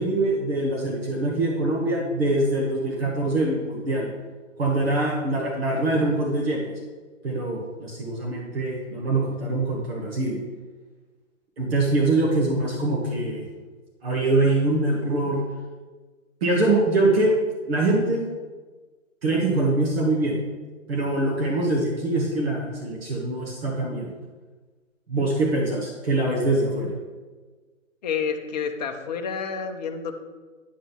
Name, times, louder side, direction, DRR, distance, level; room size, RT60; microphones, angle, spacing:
voice 1, 0.0-4.1 4.6-6.6 7.2-10.4 11.6-13.5 14.0-15.4 16.4-17.4 17.7-18.2 19.2-20.4 20.9-24.1 25.1-26.9, right 2 dB, 50° right, -3 dB, 1.9 m, -23 dB
voice 2, 28.0-30.1, left 6 dB, 30° left, 4 dB, 0.8 m, -29 dB
9.3 x 3.8 x 6.1 m, 1.3 s
hypercardioid pair, 145°, 39 cm